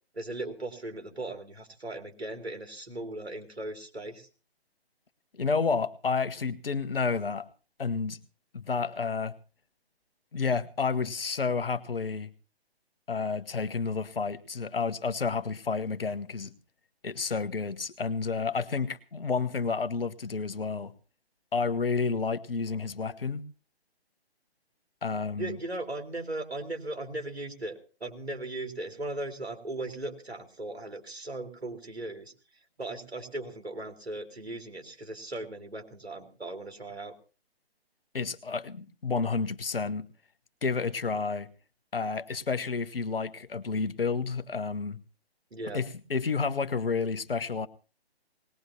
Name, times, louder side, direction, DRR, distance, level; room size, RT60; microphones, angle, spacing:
voice 1, 0.1-4.3 25.4-32.3 32.8-37.1 45.5-45.8, right 2 dB, 75° right, 4 dB, 2.8 m, -38 dB
voice 2, 5.3-7.5 7.8-8.2 8.5-9.3 10.3-12.3 13.1-16.5 17.0-20.9 21.5-23.4 25.0-25.6 38.1-40.1 40.6-41.5 41.9-45.0 45.7-47.7, left 5 dB, 60° left, 12 dB, 1.1 m, -30 dB
19.5 x 19.5 x 2.9 m, 0.35 s
figure-of-eight pair, 140°, 32 cm